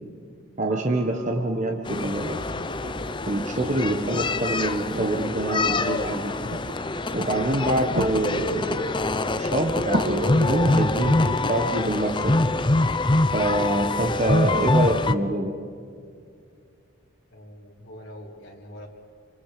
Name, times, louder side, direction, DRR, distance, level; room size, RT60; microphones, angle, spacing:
voice 1, 0.6-2.4 3.3-6.3 7.1-8.9 9.4-12.4 13.3-15.6, right 1 dB, 35° right, 2 dB, 1.4 m, -26 dB
sound 1, 0.7-14.6 16.4-16.5, right 1 dB, 55° right, 2.5 m, -36 dB
sound 2, 1.9-15.2, left 2 dB, 20° left, 0.6 m, -25 dB
voice 2, 17.3-18.9, equal, 55° left, -3 dB, 2.6 m, -44 dB
29.5 x 25.5 x 5.0 m, 2.4 s
head